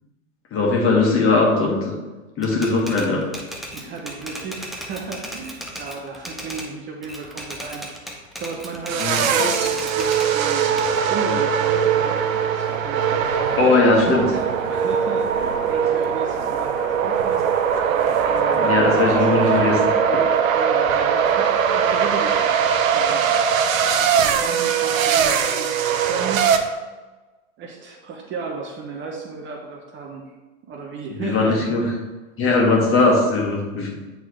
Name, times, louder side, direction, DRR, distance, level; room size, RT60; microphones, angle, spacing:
voice 1, 0.5-1.9 2.4-3.3 9.0-9.5 13.6-14.3 18.5-19.7 31.1-31.8 32.4-33.9, left 3 dB, 30° left, -1 dB, 1.6 m, -19 dB
Typewriter, 2.4-6.7 7.0-10.3 10.8-12.4, equal, ahead, 0.4 m, -36 dB
voice 2, 3.7-7.8 8.4-12.2 12.5-17.5 18.2-19.7 20.5-22.5 22.9-23.2 24.2-26.5 27.6-30.2 30.6-32.0, right 4 dB, 30° right, 1 dB, 0.8 m, -34 dB
sound 1, 8.9-26.6, right 7 dB, 75° right, 0.8 m, -20 dB
8.3 x 3.8 x 3.1 m, 1.2 s
hypercardioid pair, 120°, 40 cm